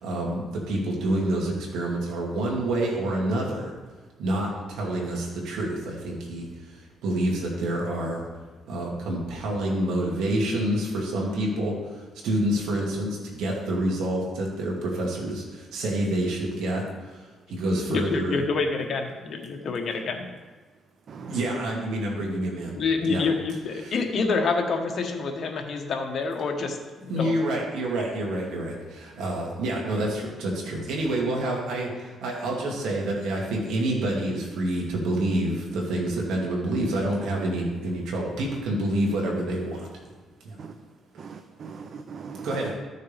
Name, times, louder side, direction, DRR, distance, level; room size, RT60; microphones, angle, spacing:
voice 1, 0.0-3.7 4.2-6.5 7.0-8.2 8.7-11.7 12.2-16.8 17.5-18.4 21.3-22.8 23.1-23.3 23.8-24.0 27.1-39.9 40.4-40.5 42.4-42.7, right 1 dB, 85° right, -2 dB, 2.6 m, -27 dB
voice 2, 17.9-20.3 22.8-27.4, left 4 dB, 55° left, 3 dB, 1.4 m, -27 dB
voice 3, 21.1-21.6 40.6-40.7 41.2-42.7, right 5 dB, 55° right, 7 dB, 0.6 m, -40 dB
14.0 x 6.5 x 3.5 m, 1.3 s
cardioid pair, 90°, 0 cm